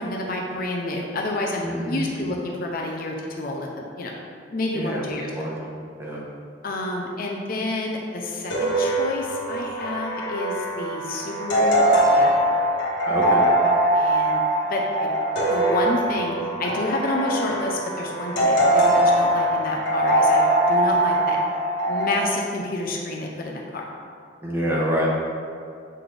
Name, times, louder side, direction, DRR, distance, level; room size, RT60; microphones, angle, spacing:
voice 1, 0.0-4.1 4.5-5.5 6.6-12.3 13.9-14.4 14.7-15.1 15.5-16.3 16.6-21.4 21.9-23.9, left 2 dB, 45° left, -1 dB, 0.6 m, -29 dB
voice 2, 1.6-2.0 4.7-5.0 5.4-5.5 6.0-6.2 13.1-13.4 24.4-25.1, equal, 10° right, -5 dB, 1.0 m, -26 dB
sound 1, 8.5-22.2, right 1 dB, 65° left, 1.4 m, -22 dB
7.7 x 3.9 x 3.4 m, 2.3 s
head